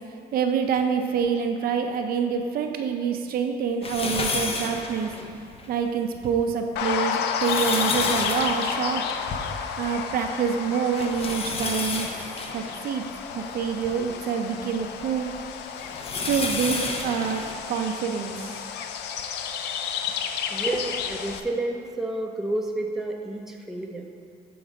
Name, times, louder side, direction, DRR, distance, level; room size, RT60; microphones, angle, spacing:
voice 1, 0.3-5.1 5.7-9.0 9.8-12.1 12.5-13.0 13.3-15.3 16.2-17.4 17.7-18.6, right 6 dB, 60° right, 4 dB, 0.6 m, -26 dB
sound 1, 3.8-5.7 6.2-6.3 7.0-10.0 10.3-10.4 10.9-14.0 14.6-18.5 19.2-19.3 20.6-20.7, left 3 dB, 35° left, 0.8 m, -32 dB
sound 2, 6.8-21.4, left 7 dB, 80° left, 0.5 m, -31 dB
voice 2, 20.5-24.1, right 2 dB, ahead, 0 dB, 0.7 m, -30 dB
7.2 x 3.9 x 6.1 m, 2.3 s
cardioid pair, 110°, 17 cm